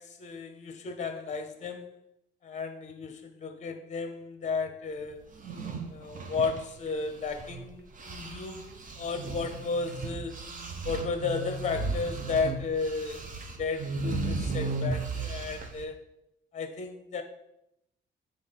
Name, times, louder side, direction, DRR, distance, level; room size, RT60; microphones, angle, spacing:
voice 1, 0.0-1.9 2.4-5.2 5.9-10.4 10.8-13.3 13.6-16.1 16.5-17.2, left 4 dB, 35° left, 7 dB, 0.7 m, -34 dB
sound 1, 5.3-7.6 8.0-15.8, right 3 dB, 40° right, 0.9 m, -35 dB
7.4 x 3.4 x 4.1 m, 0.83 s
cardioid pair, 90°, 20 cm